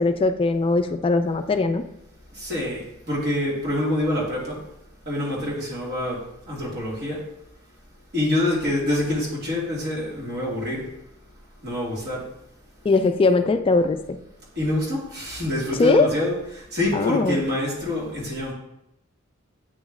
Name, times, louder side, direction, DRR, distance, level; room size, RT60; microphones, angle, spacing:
voice 1, 0.0-1.8 12.8-14.2 15.8-16.1 16.9-17.4, left 3 dB, 25° left, 8 dB, 0.3 m, -20 dB
voice 2, 2.3-4.6 5.1-7.2 8.1-10.8 11.6-12.3 14.6-18.5, left 1 dB, 55° right, -6 dB, 2.2 m, -26 dB
8.6 x 3.1 x 3.6 m, 0.82 s
head